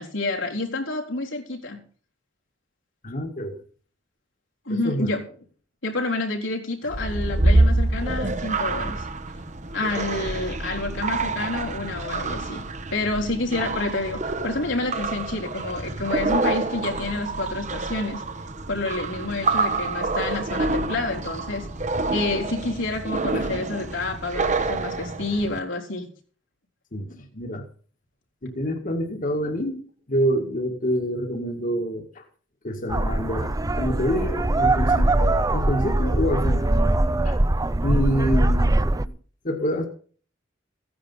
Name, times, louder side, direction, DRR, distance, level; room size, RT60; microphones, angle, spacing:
voice 1, 0.0-1.8 4.7-5.3 5.8-9.1 9.7-12.7 12.9-18.2 18.7-21.7 22.1-26.1, left 2 dB, 85° left, 3.8 m, -28 dB
voice 2, 3.0-3.5 4.7-5.1 23.3-23.5 26.9-27.6 28.4-29.8 30.1-32.2 32.6-36.7 37.2-37.4 37.8-39.1 39.4-39.9, equal, 45° left, 1.9 m, -27 dB
sound 1, 6.9-25.6, right 2 dB, 40° right, 1.1 m, -27 dB
sound 2, 32.9-39.1, right 2 dB, 20° right, 0.6 m, -21 dB
16.0 x 10.0 x 5.5 m
head